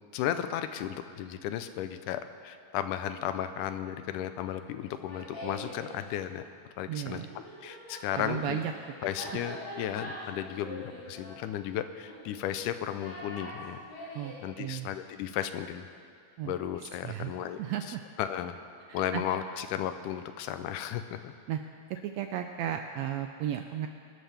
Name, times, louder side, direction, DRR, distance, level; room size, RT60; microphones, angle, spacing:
voice 1, 0.1-6.4 6.8-7.2 7.6-8.6 9.0-13.8 14.4-15.9 16.5-17.6 18.2-18.6 18.9-21.3, left 10 dB, 90° left, 10 dB, 2.2 m, -34 dB
Laughter, 4.8-5.9 7.1-14.4, equal, 70° left, 5.1 m, -43 dB
voice 2, 6.9-7.3 8.2-8.7 14.1-14.9 16.4-16.5 17.0-17.3 17.6-18.0 18.9-19.4 21.5-21.6 22.0-23.9, right 10 dB, 80° right, 6 dB, 1.5 m, -34 dB
22.5 x 12.5 x 3.5 m, 2.4 s
omnidirectional pair, 3.6 m